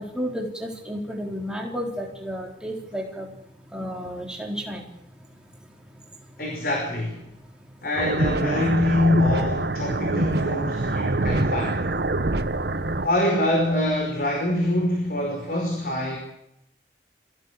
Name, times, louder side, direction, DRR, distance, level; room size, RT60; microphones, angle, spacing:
voice 1, 0.0-3.3 3.7-4.8, equal, 5° right, 0 dB, 3.8 m, -32 dB
voice 2, 6.4-7.2 7.8-11.8 13.0-16.2, left 1 dB, 55° left, 1 dB, 5.2 m, -24 dB
sound 1, 7.9-13.1, right 2 dB, 60° right, 1.1 m, -25 dB
25.0 x 16.0 x 8.4 m, 0.82 s
head